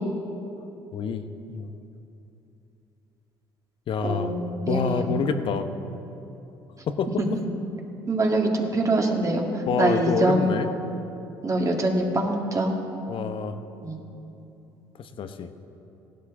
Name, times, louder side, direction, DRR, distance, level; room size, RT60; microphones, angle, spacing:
voice 1, 0.9-1.7 3.9-4.3 4.7-5.7 6.9-7.1 9.7-10.7 13.1-13.6 15.0-15.7, left 6 dB, 55° left, 9 dB, 0.9 m, -27 dB
voice 2, 4.0-5.2 7.2-7.3 8.1-10.5 11.4-12.9 13.8-14.0, right 2 dB, 30° right, 1 dB, 1.9 m, -24 dB
16.0 x 12.0 x 3.7 m, 2.9 s
supercardioid pair, 75°, 10 cm